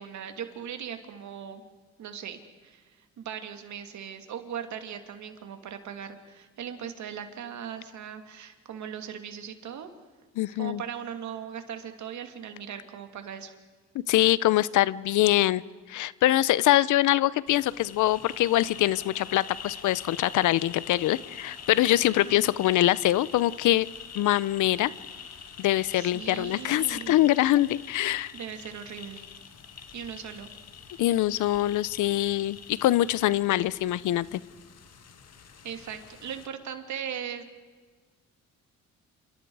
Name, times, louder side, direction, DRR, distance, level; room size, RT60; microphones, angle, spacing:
voice 1, 0.0-1.6 2.0-9.9 10.5-13.5 22.1-22.5 25.9-27.2 28.3-29.3 29.9-30.5 35.6-37.4, right 8 dB, 70° right, 6 dB, 2.6 m, -39 dB
voice 2, 10.4-10.8 14.1-15.6 15.9-23.9 24.1-24.9 25.6-28.3 31.0-34.4, left 15 dB, 80° left, 19 dB, 0.7 m, -24 dB
sound 1, 17.5-36.5, left 7 dB, 55° left, 2.0 m, -45 dB
28.5 x 28.0 x 4.8 m, 1.5 s
cardioid pair, 90°, 30 cm